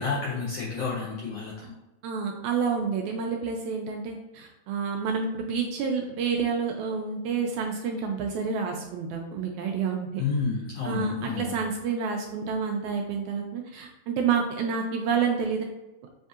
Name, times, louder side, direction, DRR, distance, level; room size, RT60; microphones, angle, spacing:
voice 1, 0.0-1.7 10.2-11.5, left 5 dB, 85° left, -4 dB, 1.4 m, -30 dB
voice 2, 2.0-10.2 10.8-15.7, right 6 dB, 80° right, 1 dB, 1.7 m, -29 dB
7.1 x 2.7 x 2.4 m, 0.96 s
omnidirectional pair, 3.7 m